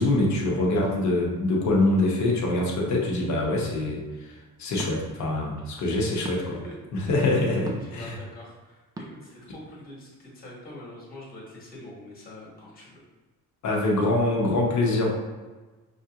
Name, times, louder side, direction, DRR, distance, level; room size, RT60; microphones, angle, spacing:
voice 1, 0.0-4.3 4.6-6.6 6.9-8.2 13.6-15.1, left 2 dB, 60° left, -1 dB, 1.0 m, -24 dB
sound 1, 0.8-1.0 2.6-2.9 4.7-5.0 6.2-6.4 7.6-8.0 8.9-9.1, right 2 dB, 10° right, 0.3 m, -37 dB
voice 2, 5.6-6.1 6.5-7.2 7.8-13.0, left 1 dB, 25° left, -5 dB, 1.3 m, -45 dB
5.9 x 2.4 x 2.8 m, 1.3 s
cardioid pair, 160°, 32 cm